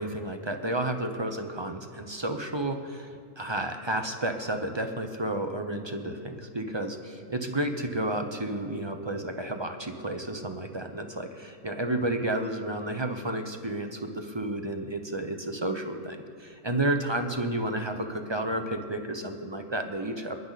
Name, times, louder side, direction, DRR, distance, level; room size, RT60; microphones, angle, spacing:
voice 1, 0.0-3.1 3.4-20.4, right 1 dB, 25° right, 5 dB, 0.7 m, -31 dB
28.0 x 10.5 x 4.1 m, 2.4 s
omnidirectional pair, 1.6 m